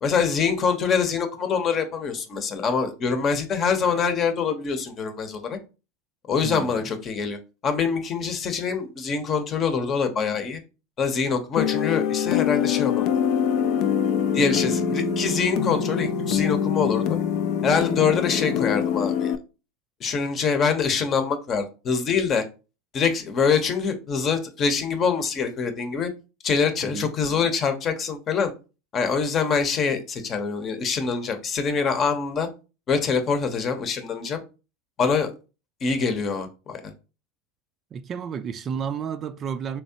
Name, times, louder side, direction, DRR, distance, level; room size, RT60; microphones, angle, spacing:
voice 1, 0.0-5.6 6.3-10.6 11.0-13.1 14.3-17.2 17.6-19.3 20.0-22.4 22.9-26.1 26.4-28.5 28.9-32.5 32.9-34.4 35.0-35.3 35.8-36.9, left 5 dB, 35° left, 0.8 m, -24 dB
voice 2, 6.4-6.9 26.9-27.1 37.9-39.8, right 7 dB, 35° right, 0.3 m, -31 dB
sound 1, 11.6-19.4, left 8 dB, 55° left, 0.4 m, -24 dB
3.5 x 3.1 x 2.7 m
hypercardioid pair, 100°, 0 cm